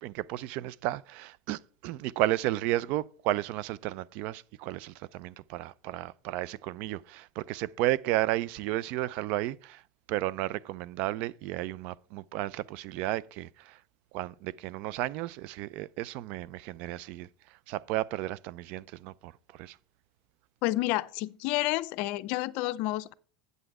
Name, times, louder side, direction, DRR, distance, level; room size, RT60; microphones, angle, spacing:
voice 1, 0.0-9.8 10.1-13.8 14.1-19.8, right 15 dB, 55° right, 0.4 m, -33 dB
voice 2, 20.6-23.1, left 17 dB, 60° left, 0.5 m, -30 dB
8.0 x 7.9 x 4.8 m
supercardioid pair, 130°, 3 cm